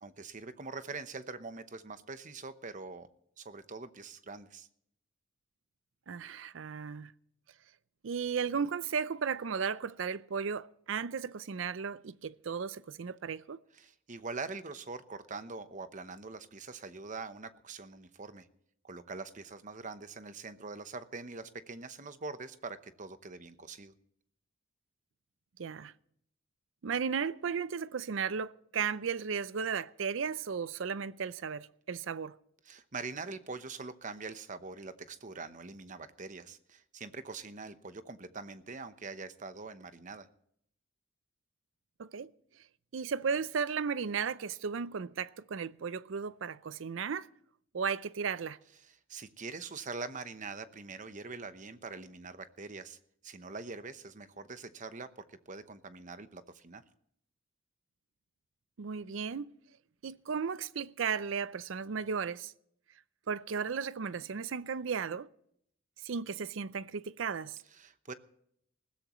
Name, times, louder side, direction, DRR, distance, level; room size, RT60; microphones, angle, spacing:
voice 1, 0.0-3.1 3.4-4.7 13.7-18.5 18.8-23.9 32.6-40.3 48.8-53.0 53.2-56.8 67.7-68.1, right 4 dB, 40° right, 0.9 m, -44 dB
voice 2, 6.1-7.1 8.0-13.6 25.6-25.9 26.8-32.3 42.0-42.3 42.9-47.3 47.7-48.6 58.8-59.5 60.0-62.5 63.3-65.3 66.0-67.6, right 6 dB, 75° right, 0.5 m, -35 dB
20.5 x 16.0 x 3.1 m
head